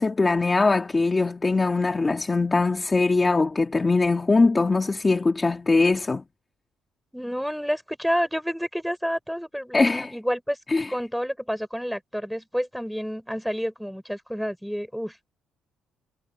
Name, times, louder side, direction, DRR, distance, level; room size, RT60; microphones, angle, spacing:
voice 1, 0.0-6.2 9.7-10.1 10.7-10.9, left 3 dB, 15° left, 1.7 m, -21 dB
voice 2, 7.1-10.6 10.9-15.3, equal, ahead, 5.5 m, -29 dB
cardioid pair, 150°, 0 cm